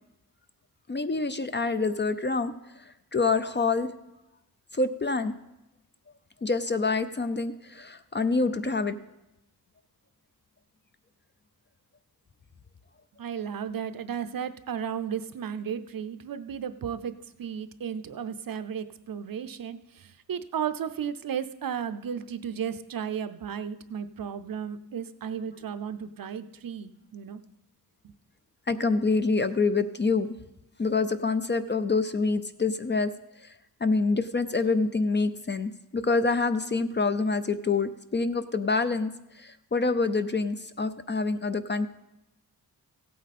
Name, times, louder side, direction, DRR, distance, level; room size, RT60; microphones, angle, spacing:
voice 1, 0.9-3.9 4.7-5.3 6.4-9.0 28.7-30.3 30.8-33.1 33.4-33.5 33.8-39.1 39.4-41.9, left 3 dB, 30° left, 11 dB, 0.4 m, -26 dB
voice 2, 13.2-17.1 17.4-27.4 28.0-28.1, right 8 dB, 60° right, 12 dB, 0.6 m, -34 dB
16.0 x 8.5 x 4.2 m, 0.93 s
wide cardioid pair, 120°, 40 cm